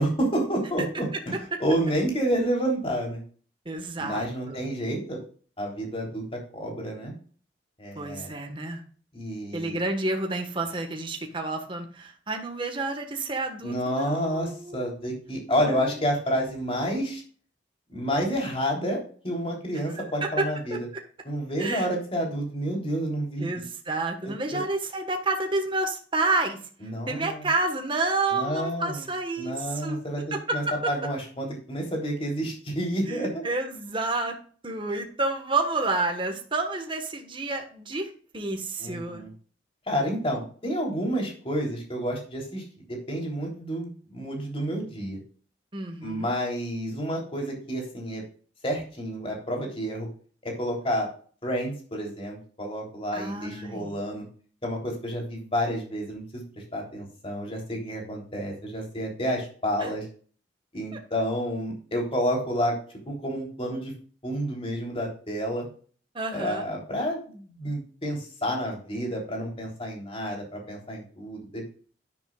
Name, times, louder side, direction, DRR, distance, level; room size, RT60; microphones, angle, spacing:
voice 1, 0.0-1.3 1.6-3.2 4.0-5.2 5.6-7.1 7.8-8.3 9.1-9.8 13.6-17.2 17.9-20.8 21.3-23.5 24.5-24.6 26.8-27.5 28.3-29.0 29.4-33.4 38.8-39.3 39.9-42.6 42.9-45.2 46.0-48.2 48.6-50.1 50.4-51.1 51.4-54.3 54.6-56.4 56.7-60.0 60.7-62.8 63.1-63.9 64.2-65.7 66.3-71.7, equal, 30° left, 0 dB, 3.5 m, -29 dB
voice 2, 3.6-4.6 7.9-8.8 9.5-14.9 15.6-16.0 19.7-20.8 21.6-21.9 23.4-26.6 27.1-30.0 30.3-30.9 33.1-34.3 34.6-39.2 45.7-46.3 53.1-54.0 59.8-59.9 60.9-61.0 66.1-66.7, right 2 dB, 30° right, 3 dB, 1.5 m, -30 dB
10.5 x 9.7 x 2.4 m, 0.43 s
head